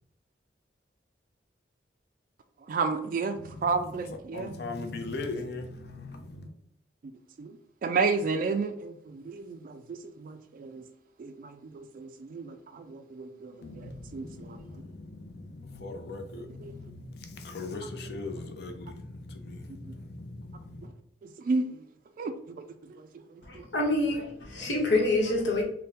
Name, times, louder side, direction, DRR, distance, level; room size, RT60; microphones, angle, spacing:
voice 1, 2.7-4.5 7.4-10.8 11.2-14.6 16.6-16.7 21.2-21.7 22.2-23.7, right 4 dB, 50° right, 0.3 m, -32 dB
voice 2, 3.4-6.5 13.6-20.9, left 3 dB, 65° left, 0.6 m, -40 dB
voice 3, 23.5-25.6, left 2 dB, 85° left, 1.0 m, -26 dB
3.5 x 2.1 x 4.1 m
head